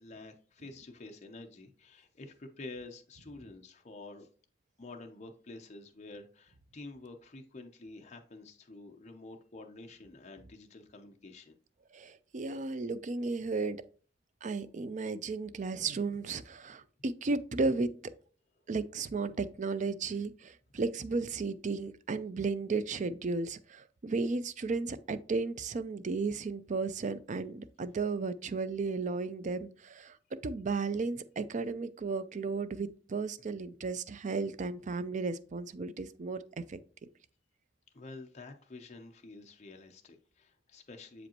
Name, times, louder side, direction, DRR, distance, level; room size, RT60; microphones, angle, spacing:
voice 1, 0.0-4.3 4.8-11.6 12.4-12.6 37.9-41.3, left 2 dB, 40° left, 0.7 m, -49 dB
voice 2, 11.9-13.8 14.4-18.1 18.7-30.2 30.4-36.8, right 4 dB, 40° right, 0.4 m, -34 dB
7.1 x 5.1 x 2.9 m
head